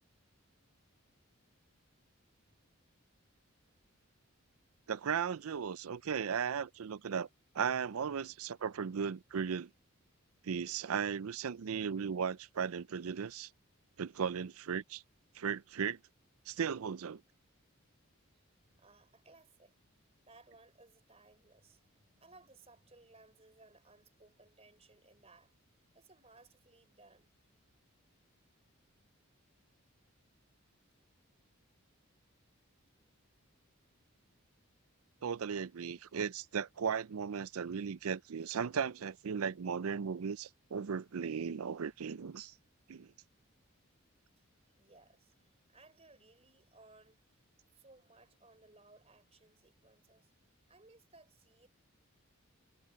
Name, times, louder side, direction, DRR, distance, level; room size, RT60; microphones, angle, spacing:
voice 1, 4.9-7.3 7.5-9.7 10.4-13.5 14.0-15.0 15.4-16.0 16.5-17.2 35.2-42.5 42.9-43.1, right 6 dB, 85° right, 0.5 m, -36 dB
voice 2, 18.6-19.8 20.2-25.5 25.9-27.4 44.4-47.4 47.7-50.3 50.7-51.7, right 3 dB, 30° right, 3.8 m, -62 dB
head